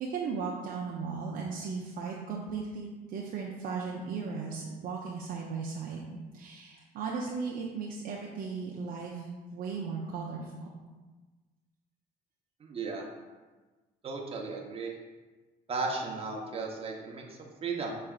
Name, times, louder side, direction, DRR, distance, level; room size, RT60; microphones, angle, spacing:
voice 1, 0.0-9.3 9.5-10.7, right 5 dB, 60° right, -2 dB, 0.5 m, -36 dB
voice 2, 12.6-13.1 14.0-14.9 15.7-17.9, right 4 dB, 35° right, -1 dB, 0.8 m, -35 dB
5.6 x 3.2 x 2.4 m, 1.3 s
cardioid pair, 95°, 17 cm